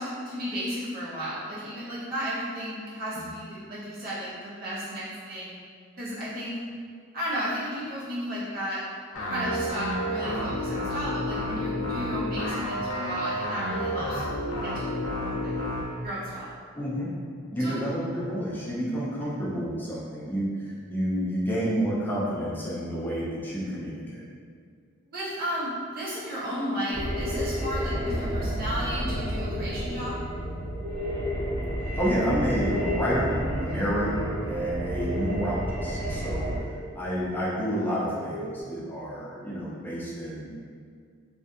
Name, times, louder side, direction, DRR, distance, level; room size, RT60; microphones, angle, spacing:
voice 1, 0.0-5.6 6.0-6.6 7.1-8.8 9.1-15.5 16.0-16.5 17.6-17.8 25.1-30.1, equal, 45° right, -9 dB, 0.8 m, -34 dB
sound 1, 9.1-15.8, left 1 dB, 75° left, 0.5 m, -30 dB
voice 2, 16.8-17.1 17.5-24.2 31.9-36.5 36.9-40.5, equal, 10° left, -7 dB, 0.5 m, -29 dB
sound 2, 26.2-38.6, left 1 dB, 65° right, 0.4 m, -37 dB
sound 3, 26.9-36.6, right 1 dB, 25° left, 0.9 m, -31 dB
2.6 x 2.5 x 2.3 m, 2.1 s
head